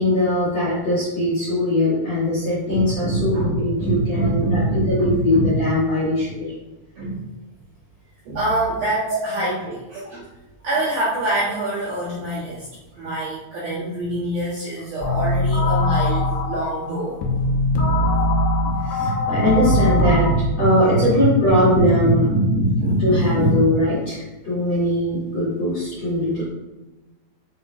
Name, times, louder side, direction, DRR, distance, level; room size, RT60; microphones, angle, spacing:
voice 1, 0.0-4.6 4.9-6.5 9.1-9.2 18.8-20.3 20.6-22.3 23.0-26.4, left 1 dB, 45° left, -10 dB, 2.4 m, -21 dB
voice 2, 2.7-5.6 7.0-7.3 8.3-10.3 10.6-12.7 13.0-17.2 18.2-18.3 18.6-19.9 20.6-23.6, right 1 dB, 65° right, -10 dB, 2.4 m, -24 dB
sound 1, 15.0-20.3, left 1 dB, 80° left, 2.4 m, -21 dB
7.0 x 5.7 x 2.7 m, 1.1 s
omnidirectional pair, 6.0 m